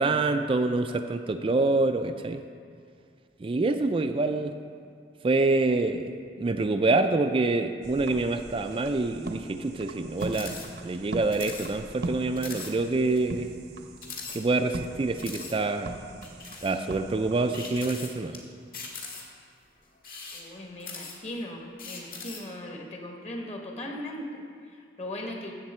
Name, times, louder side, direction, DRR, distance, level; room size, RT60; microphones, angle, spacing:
voice 1, 0.0-2.4 3.4-4.5 5.2-6.0 6.4-10.6 10.8-13.5 14.3-15.9 16.6-18.3, right 3 dB, 30° right, 7 dB, 0.4 m, -26 dB
sound 1, 7.8-17.8, right 2 dB, 65° right, 0.8 m, -40 dB
sound 2, 10.2-10.7 10.9-11.0 11.3-11.7 12.0-12.1 12.4-12.7 13.2-13.3 14.0-14.8 15.2-15.6 16.2-16.8 17.5-18.4 18.7-19.4 20.0-21.4 21.8-22.5, left 4 dB, 55° left, 1.6 m, -40 dB
voice 2, 20.3-25.5, left 1 dB, 40° left, 1 dB, 1.3 m, -38 dB
14.0 x 7.5 x 4.3 m, 2.2 s
head